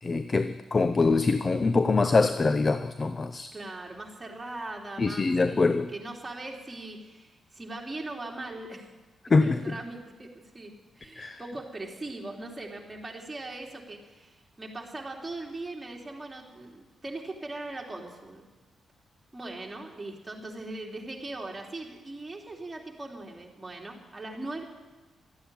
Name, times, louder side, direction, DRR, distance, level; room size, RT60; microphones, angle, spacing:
voice 1, 0.0-3.5 5.0-5.9 9.3-9.8 11.2-11.4, left 3 dB, 35° left, 11 dB, 0.6 m, -24 dB
voice 2, 3.5-8.9 9.4-18.4 19.3-24.6, right 2 dB, 20° right, -1 dB, 3.1 m, -40 dB
13.0 x 9.1 x 9.8 m, 1.2 s
cardioid pair, 70°, 0 cm